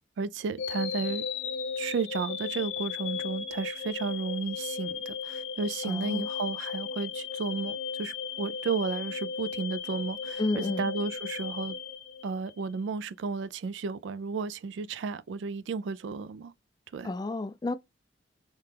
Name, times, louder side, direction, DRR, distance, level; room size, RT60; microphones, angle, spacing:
voice 1, 0.2-1.3 1.8-11.8 12.2-16.5 16.9-17.1, right 4 dB, 75° right, 0.3 m, -33 dB
sound 1, 0.6-12.7, left 6 dB, 80° left, 0.8 m, -36 dB
voice 2, 5.9-6.3 10.4-10.8 17.0-17.8, left 2 dB, 20° left, 0.3 m, -31 dB
3.3 x 2.8 x 3.3 m
head